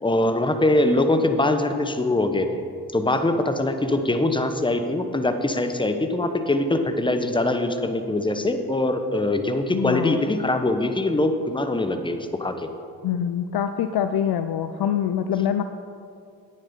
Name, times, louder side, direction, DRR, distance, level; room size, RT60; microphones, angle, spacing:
voice 1, 0.0-2.6 2.9-12.7, left 2 dB, 10° left, 7 dB, 1.0 m, -23 dB
voice 2, 9.7-10.2 13.0-15.6, left 9 dB, 50° left, 10 dB, 0.6 m, -24 dB
9.1 x 8.6 x 5.5 m, 2.4 s
hypercardioid pair, 45°, 50 cm